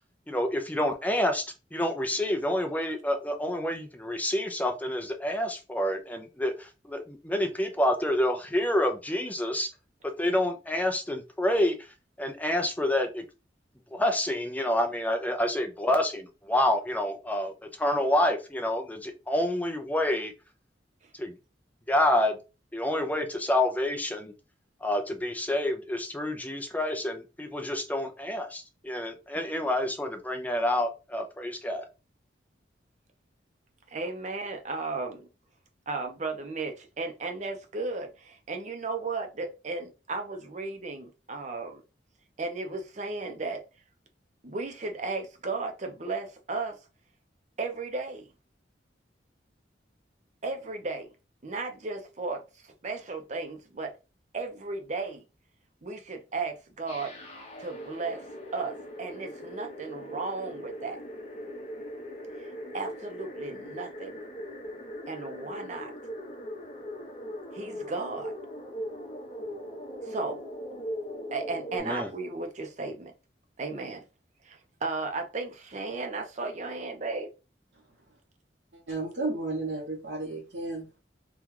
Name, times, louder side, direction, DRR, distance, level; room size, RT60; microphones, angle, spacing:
voice 1, 0.3-1.4 1.7-9.7 10.0-11.8 12.2-13.2 13.9-20.3 21.1-21.3 21.9-22.4 22.7-24.3 24.8-31.8 71.8-72.1, left 1 dB, 10° left, 0.5 m, -28 dB
voice 2, 33.9-35.3 35.9-41.8 42.4-43.6 44.4-46.8 47.6-48.3 50.4-51.1 51.4-52.4 52.8-53.9 54.3-55.2 55.8-57.1 57.6-58.2 58.5-61.0 62.7-64.1 65.1-65.9 67.5-68.3 70.0-70.4 71.3-73.1 73.6-74.0 74.4-77.3, right 3 dB, 40° right, 0.7 m, -35 dB
sound 1, 56.9-71.8, equal, 35° left, 0.8 m, -40 dB
voice 3, 78.9-81.0, right 2 dB, 80° right, 1.1 m, -33 dB
2.9 x 2.3 x 3.6 m
head